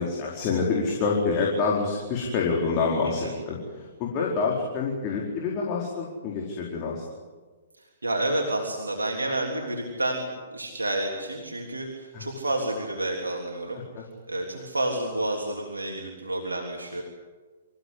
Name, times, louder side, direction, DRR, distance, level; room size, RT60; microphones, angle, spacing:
voice 1, 0.0-7.0 12.1-12.3 13.9-14.1, left 4 dB, 35° left, -2 dB, 4.7 m, -27 dB
voice 2, 7.8-10.3 10.5-13.8 14.3-17.0, right 1 dB, 80° right, 1 dB, 3.4 m, -30 dB
27.0 x 16.0 x 9.8 m, 1.4 s
figure-of-eight pair, 115°, 0 cm